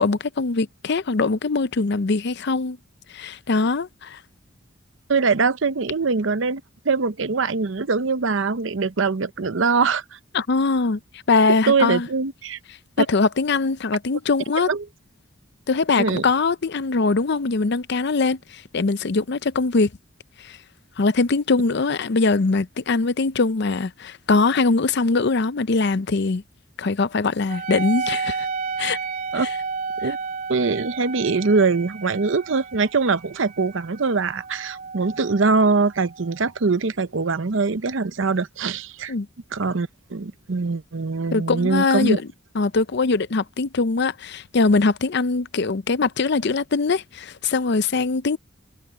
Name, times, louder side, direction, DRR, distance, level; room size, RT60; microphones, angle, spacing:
voice 1, 0.0-2.8 3.1-4.2 10.3-11.0 11.3-12.1 13.1-14.7 15.7-19.9 20.4-20.6 21.0-26.4 26.8-28.5 28.8-29.0 29.3-29.5 30.0-30.1 39.1-39.3 41.3-42.3 42.5-48.4, left 3 dB, 55° left, 0.6 m, -22 dB
voice 2, 5.1-10.2 11.7-12.6 13.0-13.1 14.7-14.9 16.0-16.3 29.3-29.5 30.0-30.2 30.5-39.1 39.5-42.2, right 4 dB, 65° right, 0.7 m, -22 dB
Wind instrument woodwind instrument, 27.5-36.4, right 5 dB, 45° right, 2.9 m, -32 dB
head